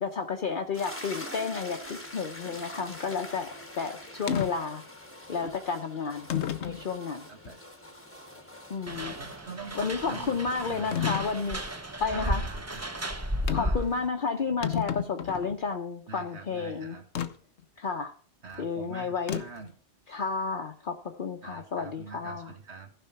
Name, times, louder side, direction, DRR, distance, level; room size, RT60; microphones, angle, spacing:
voice 1, 0.0-3.5 3.8-4.8 5.3-6.3 6.6-7.3 8.7-9.1 9.7-11.6 12.0-12.4 13.5-17.0 17.8-18.1 18.6-19.4 20.1-22.5, left 5 dB, 50° left, 2 dB, 0.9 m, -31 dB
sound 1, 0.7-11.8, left 1 dB, 10° left, 1.1 m, -45 dB
sound 2, 4.3-4.5 5.4-5.6 6.3-6.8 7.5-7.6 10.9-11.3 13.5-13.8 14.2-14.3 14.5-15.6 17.2-17.3 19.3-19.7, left 10 dB, 75° left, 1.1 m, -31 dB
voice 2, 7.3-7.6 9.1-11.1 12.1-13.0 13.6-13.9 16.1-17.0 18.4-19.7 21.4-22.9, right 4 dB, 70° right, 4 dB, 2.0 m, -44 dB
sound 3, 8.9-14.1, equal, 15° right, 0.6 m, -34 dB
15.0 x 5.4 x 5.8 m, 0.43 s
omnidirectional pair, 1.2 m